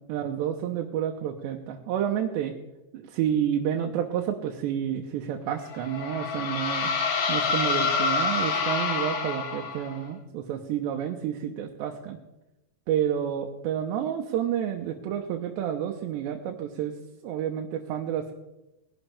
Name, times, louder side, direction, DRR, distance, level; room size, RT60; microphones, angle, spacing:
voice 1, 0.1-2.5 2.9-6.9 7.3-12.2 12.9-16.9 17.2-18.3, right 9 dB, 80° right, 2 dB, 3.2 m, -29 dB
sound 1, 5.7-10.0, left 5 dB, 70° left, 1.5 m, -27 dB
21.0 x 11.5 x 3.5 m, 0.96 s
omnidirectional pair, 5.1 m